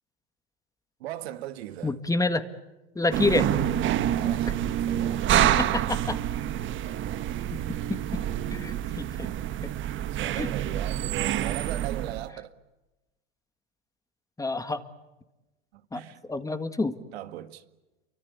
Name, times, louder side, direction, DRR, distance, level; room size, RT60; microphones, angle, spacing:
voice 1, 1.0-1.9 4.1-5.3 8.3-8.4 10.1-12.5 15.7-16.2 17.1-17.6, right 13 dB, 75° right, 2.0 m, -38 dB
voice 2, 1.8-2.5 3.0-3.5 5.4-6.2 7.9-8.0 8.5-9.3 9.6-9.7 10.3-10.5 14.4-14.8 15.9-16.0 16.3-17.0, left 3 dB, 10° left, 1.9 m, -28 dB
sound 1, 3.1-12.3, right 11 dB, 40° right, 1.2 m, -27 dB
28.5 x 24.0 x 8.4 m
hypercardioid pair, 105°, 32 cm